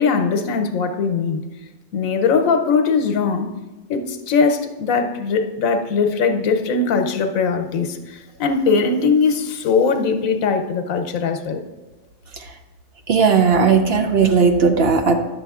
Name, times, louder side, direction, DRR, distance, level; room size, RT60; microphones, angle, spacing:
voice 1, 0.0-1.4 1.9-3.5 3.9-11.6, left 5 dB, 85° left, 6 dB, 1.2 m, -20 dB
voice 2, 13.1-15.2, right 5 dB, 60° right, 6 dB, 0.7 m, -16 dB
10.5 x 6.9 x 3.6 m, 1.2 s
omnidirectional pair, 1.4 m